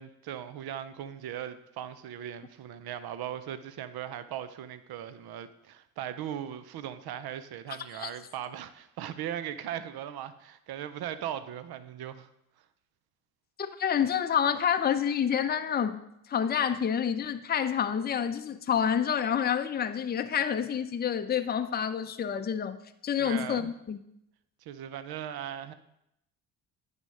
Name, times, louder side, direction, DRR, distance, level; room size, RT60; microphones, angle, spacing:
voice 1, 0.0-12.3 23.2-23.7 24.6-25.7, right 10 dB, 55° right, 0.7 m, -38 dB
voice 2, 13.6-16.0 16.3-22.8 23.0-24.0, left 8 dB, 20° left, 0.6 m, -28 dB
9.7 x 3.6 x 5.4 m
hypercardioid pair, 55°, 46 cm